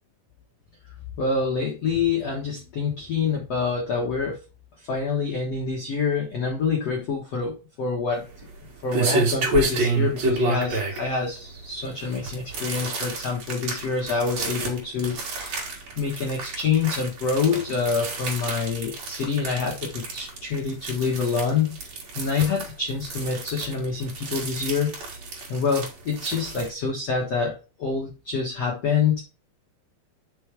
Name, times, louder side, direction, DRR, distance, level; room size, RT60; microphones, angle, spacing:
voice 1, 1.2-4.4 4.9-8.2 8.8-25.2 25.5-29.2, left 5 dB, 70° left, -1 dB, 1.5 m, -26 dB
sound 1, 8.1-26.7, right 3 dB, 45° right, 2.7 m, -30 dB
6.1 x 5.4 x 4.6 m, 0.31 s
omnidirectional pair, 5.4 m